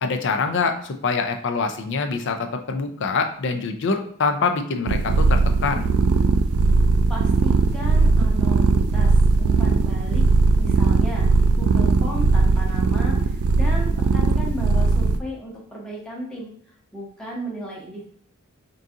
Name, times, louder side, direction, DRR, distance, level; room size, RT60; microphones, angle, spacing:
voice 1, 0.0-5.9, left 4 dB, 55° left, 6 dB, 0.5 m, -25 dB
sound 1, 4.9-15.2, right 4 dB, 70° right, 0.3 m, -19 dB
voice 2, 7.1-9.1 9.4-10.2 10.6-11.3 11.6-16.5 16.9-18.1, equal, 5° left, -4 dB, 0.9 m, -34 dB
3.8 x 2.6 x 3.6 m, 0.62 s
head